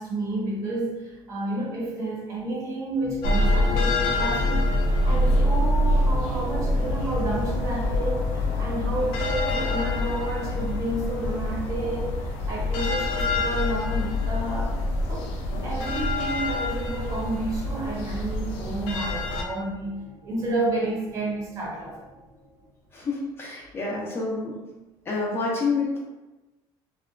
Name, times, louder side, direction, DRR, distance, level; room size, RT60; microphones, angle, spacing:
voice 1, 0.0-4.7 5.0-14.8 15.1-15.3 15.6-22.0, right 1 dB, 30° right, -3 dB, 0.6 m, -30 dB
sound 1, 3.0-22.9, equal, 80° right, 0.6 m, -43 dB
sound 2, 3.2-19.4, left 1 dB, 90° left, 0.4 m, -25 dB
voice 2, 22.9-24.6 25.1-26.0, left 3 dB, 25° left, -4 dB, 0.4 m, -28 dB
2.8 x 2.2 x 2.3 m, 1.1 s
cardioid pair, 165°, 10 cm